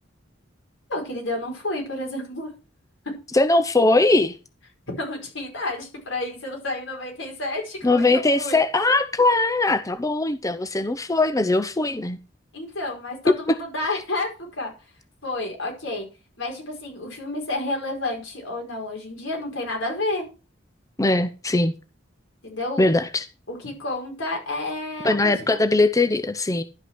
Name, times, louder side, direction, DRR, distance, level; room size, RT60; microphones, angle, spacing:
voice 1, 0.9-2.5 4.9-8.6 12.5-14.7 15.2-16.1 16.4-20.2 22.4-22.9 23.5-25.6, left 2 dB, 85° left, 5.0 m, -30 dB
voice 2, 3.3-4.4 7.8-12.2 21.0-21.7 22.8-23.3 25.0-26.6, left 2 dB, 20° left, 0.6 m, -20 dB
11.5 x 5.7 x 6.0 m
head